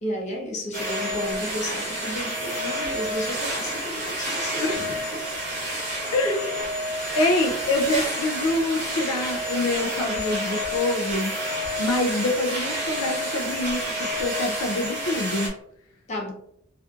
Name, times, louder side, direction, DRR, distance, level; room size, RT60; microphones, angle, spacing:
voice 1, 0.0-4.8 5.1-5.3 6.2-6.3 16.1-16.3, equal, 30° left, -1 dB, 0.5 m, -32 dB
sound 1, 0.7-15.5, equal, 35° right, 0.8 m, -29 dB
voice 2, 4.6-5.0 6.1-6.6 7.1-11.3 11.8-15.5, left 2 dB, 85° left, 5 dB, 0.3 m, -26 dB
2.5 x 2.4 x 2.3 m, 0.70 s
head